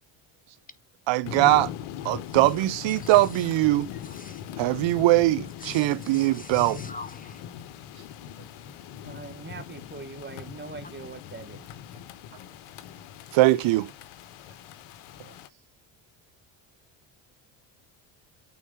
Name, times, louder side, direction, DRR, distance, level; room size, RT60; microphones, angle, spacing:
voice 1, 1.1-1.7 2.0-3.9 4.6-6.8 13.3-13.9, right 17 dB, 65° right, 0.6 m, -21 dB
sound 1, 1.2-15.5, left 10 dB, 80° left, 1.0 m, -40 dB
voice 2, 2.9-3.5 3.9-4.7 5.6-7.5, left 3 dB, 15° left, 1.1 m, -45 dB
voice 3, 9.0-11.7, right 4 dB, 20° right, 1.4 m, -42 dB
8.7 x 4.1 x 3.7 m
supercardioid pair, 75°, 49 cm